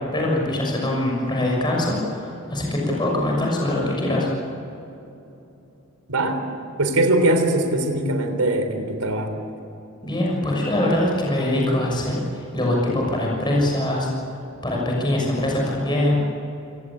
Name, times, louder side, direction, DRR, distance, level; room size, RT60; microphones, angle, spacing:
voice 1, 0.1-4.3 10.0-14.1 14.6-16.2, left 1 dB, 20° left, -2 dB, 6.4 m, -23 dB
voice 2, 6.1-6.4 6.8-9.3, right 1 dB, 85° right, 6 dB, 3.8 m, -21 dB
28.0 x 18.0 x 8.7 m, 2.9 s
head